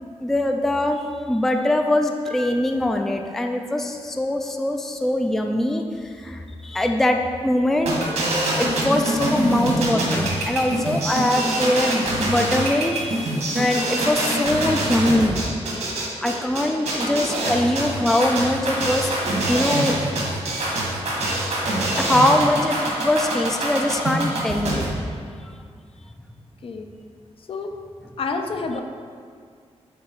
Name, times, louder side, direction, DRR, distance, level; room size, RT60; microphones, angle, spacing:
voice 1, 0.2-1.0 1.3-5.8 6.2-7.2 7.4-7.9 8.6-15.4 16.2-20.0 22.0-22.8 23.0-24.9, left 1 dB, 5° left, 4 dB, 0.3 m, -22 dB
Piano, 2.3-4.4, left 1 dB, 50° right, 0.9 m, -44 dB
sound 1, 7.9-24.9, right 1 dB, 85° right, 1.9 m, -24 dB
voice 2, 16.7-17.3 26.6-26.9 27.5-27.8 28.2-28.8, left 4 dB, 55° left, 5 dB, 0.6 m, -30 dB
8.3 x 4.1 x 4.6 m, 2.1 s
wide cardioid pair, 155°, 11 cm